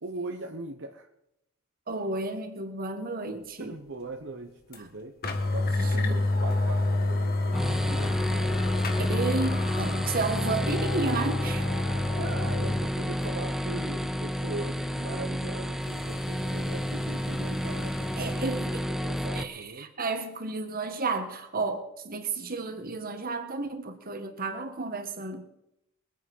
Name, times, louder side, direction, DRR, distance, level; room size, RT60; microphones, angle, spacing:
voice 1, 0.0-1.1 3.6-5.2 5.5-8.5 12.2-18.4 18.9-19.9, right 2 dB, 60° right, 1.1 m, -40 dB
voice 2, 1.9-3.8 5.7-6.2 9.0-11.7 18.2-18.9 19.3-25.4, right 3 dB, 45° right, 1.7 m, -32 dB
sound 1, 4.7-4.8 5.2-12.8 13.2-13.3 15.8-18.4, left 2 dB, 45° left, 1.8 m, -29 dB
sound 2, 7.5-19.4, equal, ahead, 0.7 m, -31 dB
23.0 x 9.2 x 5.5 m
head